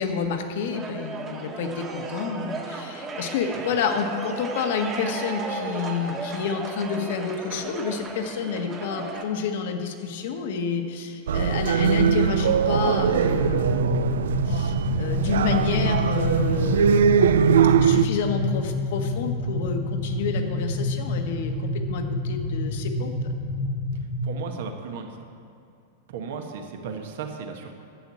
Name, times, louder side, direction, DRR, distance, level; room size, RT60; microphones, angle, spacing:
voice 1, 0.0-17.4 17.8-23.1, left 6 dB, 65° left, 5 dB, 1.3 m, -29 dB
sound 1, 0.7-9.2, right 3 dB, 25° right, 1.4 m, -35 dB
sound 2, 11.3-18.1, right 7 dB, 85° right, 0.4 m, -21 dB
sound 3, 13.3-24.2, left 2 dB, 35° left, 1.1 m, -28 dB
voice 2, 23.9-25.2 26.1-27.7, right 5 dB, 70° right, 4 dB, 1.3 m, -35 dB
10.0 x 7.1 x 8.4 m, 2.4 s
hypercardioid pair, 130°, 0 cm